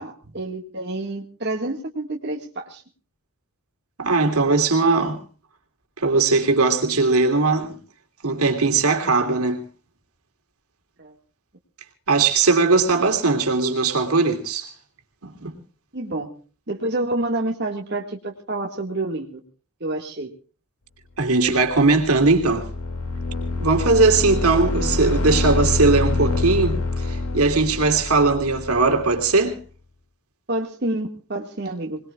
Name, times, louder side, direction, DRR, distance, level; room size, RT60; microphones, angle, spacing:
voice 1, 0.0-2.8 11.0-11.1 15.9-16.3 16.7-19.4 19.8-20.3 30.5-32.0, right 2 dB, 50° right, 1.9 m, -28 dB
voice 2, 4.0-5.2 6.0-7.8 8.2-9.6 12.1-14.7 15.2-15.6 21.2-22.7 23.6-29.6, right 3 dB, 90° right, 3.0 m, -19 dB
sound 1, 21.6-29.4, left 2 dB, 85° left, 2.4 m, -26 dB
25.5 x 20.0 x 2.4 m
head